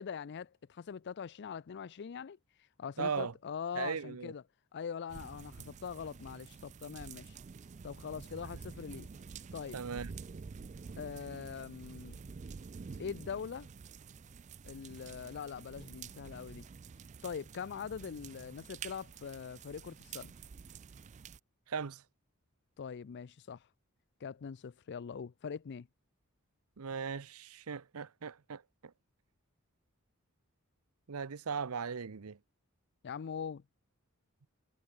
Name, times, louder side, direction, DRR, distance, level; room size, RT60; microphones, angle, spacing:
voice 1, 0.0-4.4 4.7-7.4 7.8-9.1 9.5-9.8 11.0-12.2 13.0-13.7 14.6-16.7 17.2-20.3 22.8-23.7 24.2-25.9 33.0-33.6, left 6 dB, 50° left, 0.4 m, -42 dB
voice 2, 3.0-3.3 3.8-4.3 9.7-10.1 21.7-22.0 26.8-28.9 31.1-32.4, right 6 dB, 80° right, 0.7 m, -38 dB
sound 1, 5.1-21.4, right 5 dB, 35° right, 0.4 m, -49 dB
head